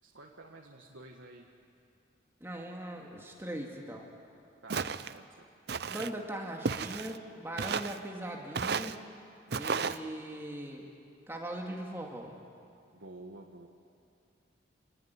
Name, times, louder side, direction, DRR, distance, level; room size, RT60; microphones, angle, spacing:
voice 1, 0.0-1.5 4.6-5.5 12.9-13.7, right 2 dB, 85° right, 0 dB, 1.8 m, -51 dB
voice 2, 2.4-4.1 5.7-9.0 9.5-10.9 11.3-12.3, right 1 dB, 10° right, 0 dB, 2.4 m, -40 dB
Walk footsteps, 4.7-5.1 5.7-6.1 6.6-7.2 7.6-8.0 8.5-9.0 9.5-10.0, right 5 dB, 55° right, 0.7 m, -33 dB
28.0 x 20.0 x 9.8 m, 2.5 s
head